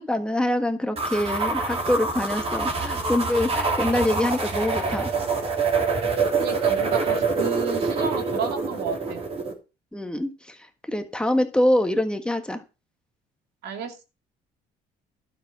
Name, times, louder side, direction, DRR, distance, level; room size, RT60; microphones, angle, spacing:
voice 1, 0.0-5.1 9.9-10.6 10.9-12.6, left 1 dB, 5° left, 6 dB, 1.5 m, -25 dB
sound 1, 1.0-9.5, right 4 dB, 35° right, 3.5 m, -25 dB
voice 2, 6.4-9.2 13.6-14.0, right 6 dB, 75° right, 6 dB, 2.6 m, -31 dB
12.0 x 6.9 x 6.1 m, 0.30 s
cardioid pair, 110°, 17 cm